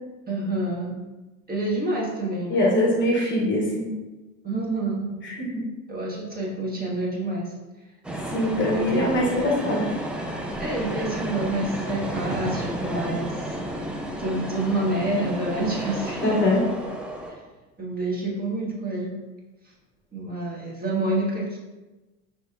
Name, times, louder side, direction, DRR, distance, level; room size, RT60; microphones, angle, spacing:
voice 1, 0.3-1.0 1.5-2.8 4.4-5.1 5.9-7.5 8.6-9.3 10.6-13.6 14.2-16.4 17.3-17.4 17.8-19.1 20.1-21.6, right 2 dB, 20° right, -4 dB, 1.3 m, -28 dB
voice 2, 2.5-3.9 5.2-5.6 8.3-9.9 16.2-16.6, left 1 dB, 30° left, -2 dB, 0.9 m, -23 dB
sound 1, 8.0-17.3, right 1 dB, 5° right, 0.3 m, -32 dB
6.1 x 3.0 x 2.3 m, 1.1 s
hypercardioid pair, 85°, 41 cm